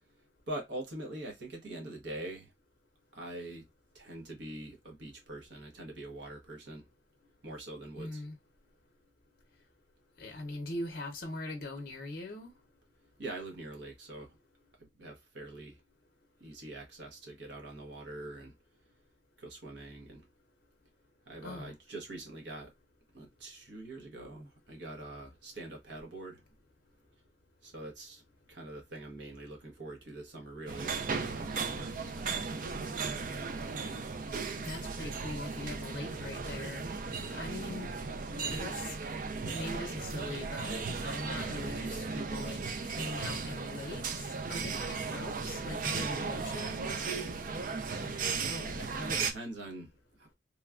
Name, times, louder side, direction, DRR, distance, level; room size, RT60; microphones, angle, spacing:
voice 1, 0.5-2.5 3.1-3.7 3.9-6.9 7.4-8.2 13.2-14.4 14.8-15.8 16.4-18.5 19.4-20.3 21.3-22.7 23.1-26.4 27.6-28.2 28.5-33.2 48.4-50.3, right 1 dB, 70° right, 0.9 m, -44 dB
voice 2, 8.0-8.3 10.2-12.5 21.4-21.7 34.6-36.9 37.2-37.9 38.5-39.1 39.4-46.9, left 2 dB, 50° left, 0.6 m, -41 dB
sound 1, 30.7-49.3, right 4 dB, 45° right, 0.4 m, -36 dB
3.0 x 2.2 x 2.3 m
head